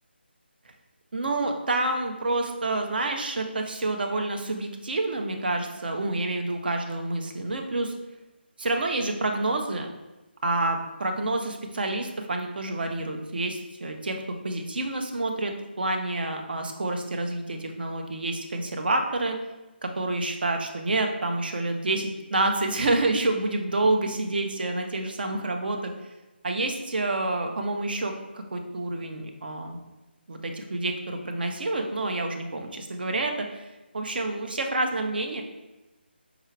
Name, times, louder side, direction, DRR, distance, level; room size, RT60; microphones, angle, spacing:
voice 1, 1.1-7.9 8.6-9.9 10.4-19.4 19.8-25.9 26.4-29.8 30.3-33.7 33.9-35.4, right 2 dB, 55° right, 4 dB, 0.6 m, -28 dB
4.7 x 2.3 x 3.2 m, 1.1 s
figure-of-eight pair, 160°, 6 cm